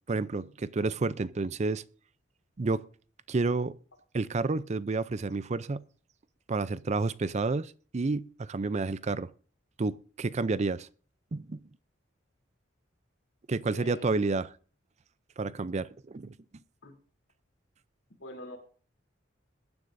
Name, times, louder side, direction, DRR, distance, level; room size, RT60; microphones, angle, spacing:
voice 1, 0.1-1.8 2.6-2.8 3.3-3.7 4.1-5.8 6.5-9.3 9.8-10.8 11.3-11.6 13.5-14.5 15.4-16.3, right 3 dB, 35° right, 0.5 m, -30 dB
voice 2, 13.7-14.1 16.8-16.9 18.2-18.6, left 1 dB, 75° left, 3.2 m, -43 dB
22.0 x 9.6 x 2.6 m
head